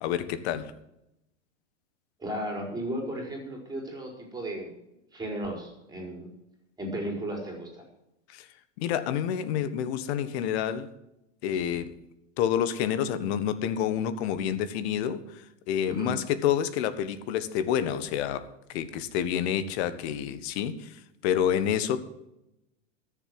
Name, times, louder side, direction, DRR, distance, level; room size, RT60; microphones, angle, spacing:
voice 1, 0.0-0.7 8.3-8.4 8.8-10.9 11.4-11.9 12.4-15.2 15.7-20.9 21.2-22.0, left 9 dB, 60° left, 13 dB, 1.4 m, -28 dB
voice 2, 2.2-4.7 5.1-6.3 6.8-7.8 15.9-16.1, right 1 dB, 10° right, 1 dB, 4.7 m, -34 dB
13.5 x 7.4 x 7.9 m, 0.87 s
hypercardioid pair, 110°, 37 cm